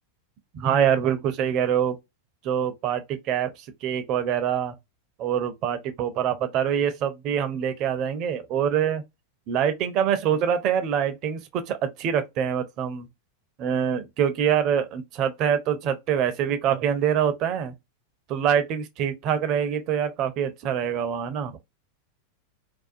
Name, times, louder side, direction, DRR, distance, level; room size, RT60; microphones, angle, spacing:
voice 1, 0.5-1.9 2.4-3.5 3.8-4.8 5.2-9.0 9.5-13.1 13.6-17.7 18.3-21.6, right 8 dB, 40° right, 0.4 m, -25 dB
2.4 x 2.2 x 2.6 m
figure-of-eight pair, 90°, 0 cm